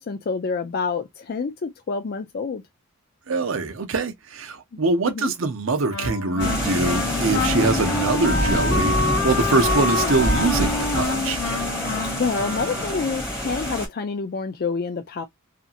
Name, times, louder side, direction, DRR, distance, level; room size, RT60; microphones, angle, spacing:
voice 1, 0.0-2.6 5.1-5.3 12.2-15.3, left 4 dB, 45° left, 0.4 m, -27 dB
voice 2, 3.3-9.0 9.2-11.4, right 3 dB, 65° right, 0.7 m, -23 dB
Wind instrument woodwind instrument, 5.9-13.2, left 3 dB, 85° left, 0.7 m, -27 dB
sound 1, 6.4-13.9, equal, 10° left, 1.8 m, -26 dB
2.8 x 2.6 x 2.4 m
head